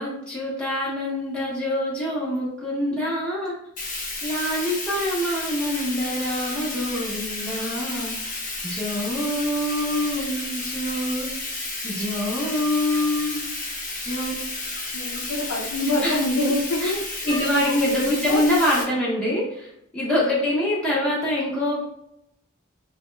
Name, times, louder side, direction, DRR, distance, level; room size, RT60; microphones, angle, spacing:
voice 1, 0.0-3.5 4.2-11.3 11.8-13.5 14.0-14.3 16.0-16.2 16.8-16.9 17.2-21.8, left 1 dB, 5° left, -8 dB, 0.7 m, -25 dB
Bathtub (filling or washing), 3.8-18.8, left 2 dB, 40° left, 0.8 m, -32 dB
voice 2, 14.9-17.0 17.3-18.4 20.0-20.4, left 2 dB, 85° left, -1 dB, 0.5 m, -27 dB
2.8 x 2.2 x 3.1 m, 0.78 s
head